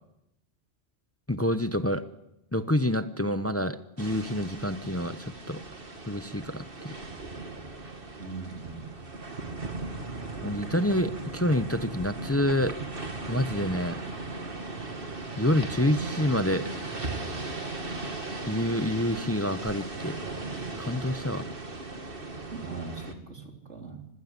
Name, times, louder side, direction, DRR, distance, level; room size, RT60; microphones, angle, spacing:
voice 1, 1.3-2.0 2.5-5.6 6.1-6.9 7.8-7.9 10.4-12.8 13.3-14.0 15.4-16.7 18.5-20.2 20.8-21.5, left 1 dB, 15° left, 11 dB, 0.8 m, -27 dB
sound 1, 4.0-23.1, right 3 dB, 55° right, 2.5 m, -37 dB
voice 2, 8.2-8.9 22.5-24.1, right 4 dB, 90° right, 3 dB, 3.9 m, -40 dB
25.5 x 16.5 x 9.7 m, 0.87 s
omnidirectional pair, 1.2 m